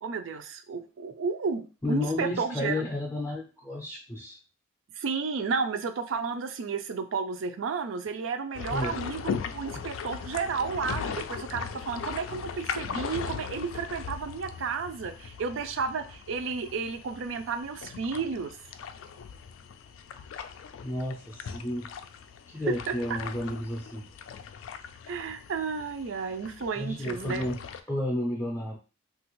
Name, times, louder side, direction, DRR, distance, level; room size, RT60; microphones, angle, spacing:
voice 1, 0.0-2.8 5.0-18.6 22.7-23.2 25.1-27.5, right 5 dB, 80° right, 9 dB, 0.4 m, -32 dB
voice 2, 1.8-4.4 8.7-9.0 20.1-20.3 20.8-21.9 22.5-24.1 26.8-27.6 27.9-28.8, left 1 dB, 15° left, -1 dB, 0.4 m, -32 dB
sound 1, 8.5-27.8, left 6 dB, 85° left, 0.3 m, -39 dB
3.3 x 2.4 x 3.0 m, 0.34 s
head